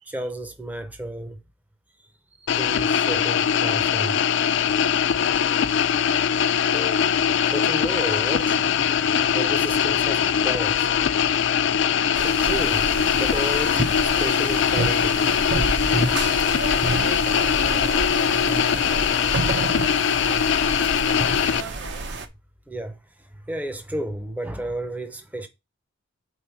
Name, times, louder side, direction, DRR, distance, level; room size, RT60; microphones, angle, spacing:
voice 1, 0.0-1.4 2.0-4.2 6.7-7.1 7.5-8.6 9.3-11.0 12.2-12.9 13.2-15.2 22.7-25.5, right 1 dB, 10° right, 0.6 m, -32 dB
sound 1, 2.5-21.6, left 8 dB, 60° left, 0.3 m, -22 dB
Explosion, 8.3-13.8, equal, 40° right, 1.0 m, -45 dB
sound 2, 12.1-22.3, right 3 dB, 55° right, 0.7 m, -29 dB
voice 2, 16.5-17.9 19.0-22.1, right 3 dB, 85° right, 1.0 m, -39 dB
4.8 x 3.8 x 5.5 m
head